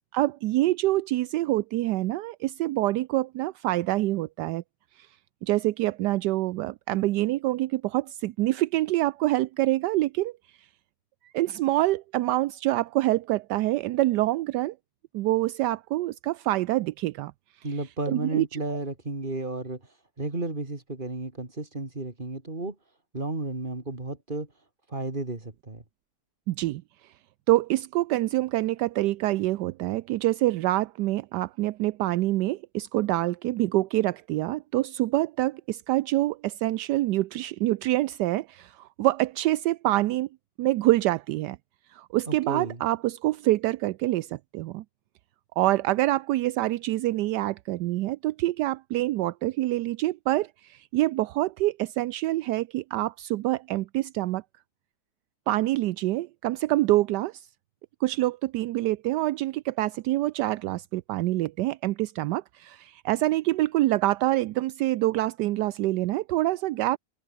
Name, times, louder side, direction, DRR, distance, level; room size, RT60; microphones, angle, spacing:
voice 1, 0.1-4.6 5.0-5.1 5.4-10.7 11.2-14.7 15.1-17.3 18.1-18.6 26.5-26.8 27.5-40.3 40.6-41.6 41.9-44.8 45.6-54.4 55.5-57.5 58.0-67.0, right 16 dB, 80° right, 1.2 m, -26 dB
voice 2, 17.6-19.8 20.2-22.8 23.1-24.5 24.9-25.8 42.3-42.8, right 2 dB, 30° right, 3.3 m, -33 dB
omnidirectional pair, 1.8 m